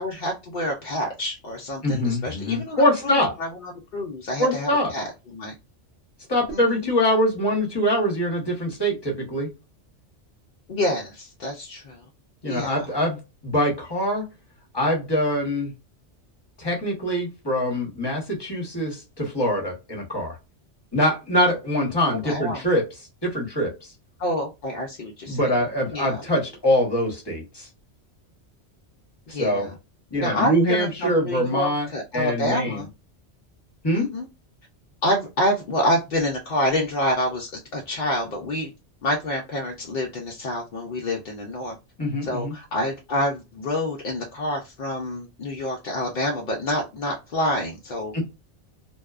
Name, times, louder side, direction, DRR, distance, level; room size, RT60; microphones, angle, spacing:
voice 1, 0.0-5.5 6.5-6.9 10.7-12.0 12.4-12.9 22.1-22.7 24.2-25.6 25.9-26.2 29.3-29.7 30.2-32.9 33.9-34.3 35.0-38.7 39.0-41.7 42.2-48.2, left 1 dB, 55° left, 0 dB, 0.6 m, -27 dB
voice 2, 1.8-3.3 4.4-4.9 6.3-9.5 12.4-14.3 14.7-15.7 16.6-20.4 20.9-22.8 23.2-23.9 25.3-27.7 29.3-29.7 30.1-31.9 32.1-32.8 33.8-34.1 42.0-42.5 48.1-48.2, equal, 25° left, -1 dB, 0.8 m, -23 dB
2.7 x 2.2 x 2.3 m, 0.27 s
omnidirectional pair, 1.2 m